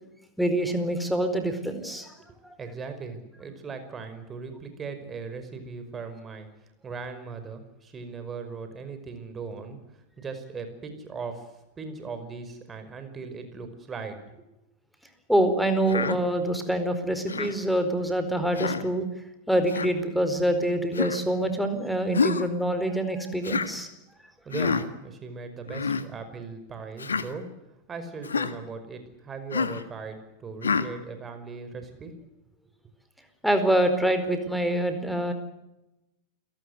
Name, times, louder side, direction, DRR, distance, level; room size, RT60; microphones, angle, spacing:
voice 1, 0.4-2.1 2.4-2.6 15.3-19.0 19.5-23.9 33.4-35.3, right 1 dB, ahead, 7 dB, 4.4 m, -25 dB
voice 2, 2.6-6.5 6.8-9.8 10.2-11.5 11.8-14.5 24.2-27.5 27.9-32.2, right 4 dB, 20° right, 8 dB, 5.3 m, -38 dB
Human voice, 15.9-16.2 17.3-17.6 18.5-18.9 19.7-19.9 20.9-21.2 22.1-22.5 23.4-23.7 24.5-24.8 25.7-26.0 27.0-27.3 28.2-28.5 29.5-29.8 30.6-30.9, left 5 dB, 70° left, 1.7 m, -27 dB
29.0 x 18.0 x 8.1 m, 0.96 s
figure-of-eight pair, 90°, 0 cm